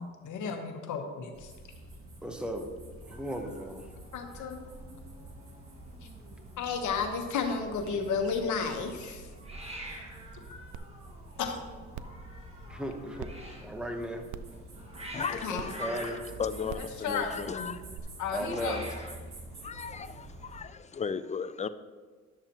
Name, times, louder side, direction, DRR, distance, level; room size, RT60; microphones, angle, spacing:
voice 1, 0.0-1.5 4.1-4.6 6.6-9.3 11.4-11.6 15.4-15.6 16.8-17.7 18.2-18.8, left 5 dB, 75° left, 1.2 m, -33 dB
sound 1, 1.3-20.6, right 1 dB, 45° right, 1.9 m, -48 dB
voice 2, 2.2-2.7 3.0-3.9 4.4-4.5 12.7-14.3 15.5-16.2 17.4-17.5 18.3-18.9, equal, 5° right, 1.0 m, -36 dB
Hiss, 3.1-20.4, equal, 20° right, 1.7 m, -49 dB
sound 2, 10.7-10.8 11.3-11.4 11.9-12.2 13.2-13.3 14.3-14.6 15.5-15.7 16.7-16.9 18.0-18.1, right 9 dB, 75° right, 0.4 m, -41 dB
voice 3, 15.1-16.0 16.4-17.8 18.5-18.6 19.6-21.7, left 6 dB, 25° left, 0.4 m, -36 dB
10.5 x 6.8 x 3.0 m
cardioid pair, 90°, 30 cm